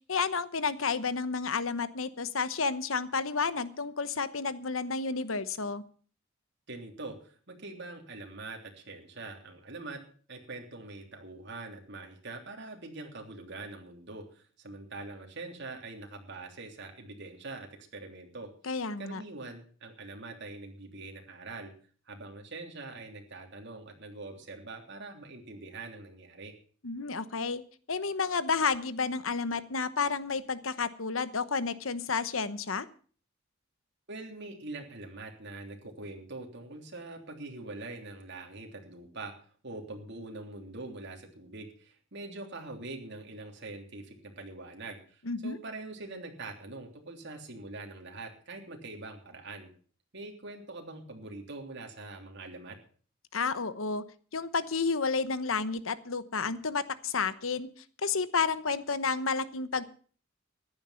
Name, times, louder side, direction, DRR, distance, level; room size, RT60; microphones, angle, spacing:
voice 1, 0.1-5.8 18.6-19.2 26.8-27.6 27.9-32.9 45.2-45.6 53.3-54.0 54.3-57.7 58.0-59.8, left 4 dB, 80° left, 14 dB, 1.1 m, -31 dB
voice 2, 6.7-10.0 10.3-18.5 19.0-21.7 22.1-26.5 34.1-39.3 39.6-49.7 50.1-52.8, right 2 dB, 60° right, 2 dB, 3.2 m, -43 dB
15.0 x 11.0 x 5.7 m, 0.43 s
head